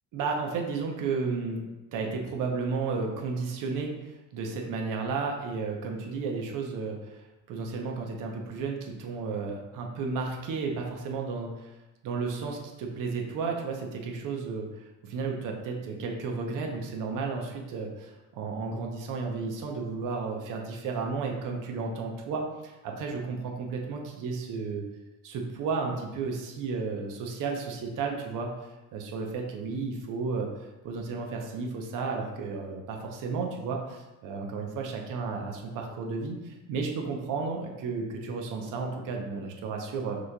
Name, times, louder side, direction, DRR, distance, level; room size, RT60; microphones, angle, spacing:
voice 1, 0.1-3.9 4.3-7.2 7.5-11.7 12.0-14.7 15.0-24.8 25.2-28.5 28.9-30.5 30.8-40.2, right 4 dB, 70° right, 1 dB, 0.8 m, -33 dB
5.9 x 3.2 x 2.3 m, 1.1 s
cardioid pair, 110°, 33 cm